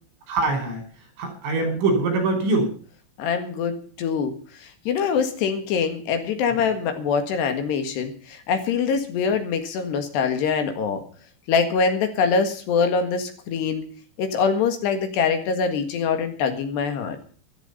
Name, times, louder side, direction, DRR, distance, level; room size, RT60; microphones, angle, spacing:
voice 1, 0.3-0.8 1.2-2.7 6.5-6.6, right 3 dB, 85° right, 5 dB, 7.5 m, -23 dB
voice 2, 3.2-4.3 4.9-11.0 11.5-13.8 14.2-17.2, left 5 dB, 65° left, 7 dB, 3.7 m, -24 dB
14.5 x 13.0 x 5.6 m, 0.43 s
omnidirectional pair, 5.5 m